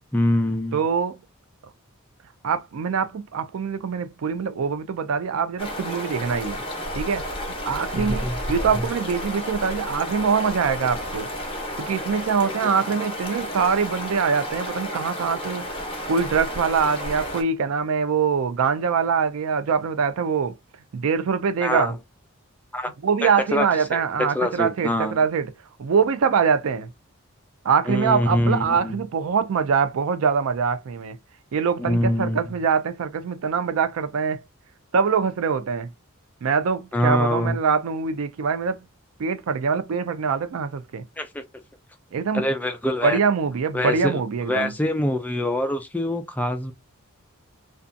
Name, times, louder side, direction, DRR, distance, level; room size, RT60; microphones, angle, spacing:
voice 1, 0.1-0.8 7.9-8.4 8.7-8.9 12.4-12.7 21.6-22.0 22.7-22.9 23.2-24.0 24.3-25.2 27.9-29.0 31.8-32.5 36.9-37.6 41.2-41.4 42.3-43.2 43.7-46.7, left 1 dB, 10° left, 0.3 m, -25 dB
voice 2, 0.7-1.2 2.4-6.6 6.9-7.2 7.7-11.3 11.8-15.7 16.1-20.6 20.9-21.9 23.0-25.5 25.8-26.9 27.6-31.2 31.5-34.4 34.9-35.9 36.4-38.8 39.2-41.0 42.1-42.4 43.0-44.7, right 6 dB, 70° right, 0.4 m, -23 dB
sound 1, 5.6-17.4, equal, 25° left, 0.7 m, -31 dB
2.6 x 2.3 x 2.4 m
head